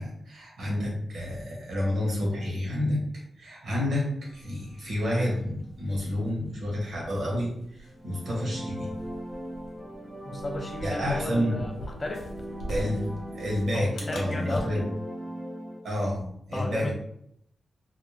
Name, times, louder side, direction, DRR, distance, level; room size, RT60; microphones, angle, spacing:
voice 1, 0.0-3.0 3.4-8.9 10.8-11.6 12.7-14.8 15.8-16.9, left 1 dB, 75° right, -3 dB, 1.1 m, -29 dB
sound 1, 4.2-14.6, equal, 80° left, 0.7 m, -44 dB
sound 2, 7.9-15.8, equal, 15° right, 0.6 m, -39 dB
voice 2, 10.2-12.3 13.7-14.9 16.5-16.9, left 2 dB, 40° left, 3 dB, 0.4 m, -34 dB
2.5 x 2.2 x 3.1 m, 0.73 s
cardioid pair, 50°, 0 cm